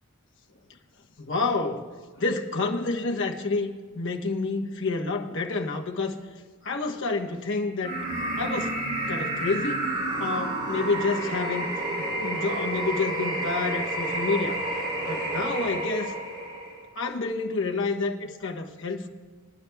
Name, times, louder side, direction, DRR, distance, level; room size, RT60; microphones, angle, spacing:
voice 1, 1.2-1.9 2.2-6.2 6.6-8.0 8.4-8.8 9.1-9.9 10.2-14.6 15.0-16.1 17.0-19.1, left 3 dB, 60° left, 1.0 m, -29 dB
sound 1, 7.8-16.8, right 1 dB, 45° right, 3.5 m, -30 dB
21.0 x 11.0 x 2.3 m
head